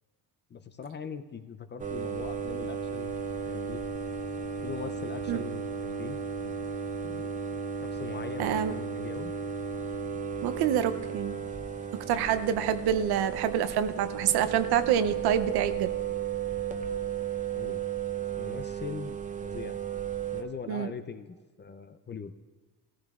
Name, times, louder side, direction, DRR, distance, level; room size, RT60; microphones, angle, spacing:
voice 1, 0.5-3.1 3.4-3.8 4.6-6.5 7.0-7.3 7.8-9.3 17.5-17.8 18.4-19.2 19.4-19.8 20.3-22.3, left 6 dB, 30° left, 9 dB, 0.5 m, -41 dB
Large Power Distribution, 1.8-20.4, right 7 dB, 20° right, 0.7 m, -34 dB
voice 2, 8.4-8.8 10.4-11.4 11.9-15.9 20.7-20.9, right 9 dB, 85° right, 11 dB, 0.8 m, -27 dB
16.5 x 14.0 x 2.4 m, 1.4 s
cardioid pair, 110°, 37 cm